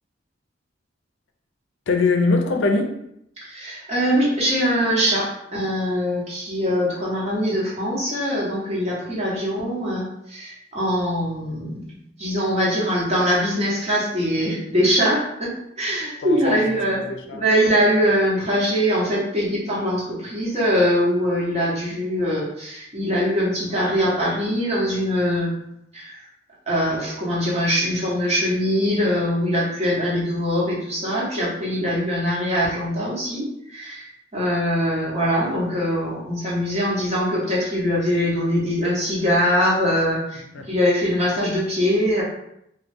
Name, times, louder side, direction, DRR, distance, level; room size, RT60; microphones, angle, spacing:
voice 1, 1.9-2.9 16.2-17.4 40.5-40.7, left 3 dB, 70° left, 3 dB, 0.5 m, -22 dB
voice 2, 3.4-15.5 15.8-17.1 17.3-25.6 25.9-26.3 26.7-42.2, equal, 35° right, -6 dB, 1.1 m, -22 dB
3.0 x 2.2 x 3.4 m, 0.77 s
head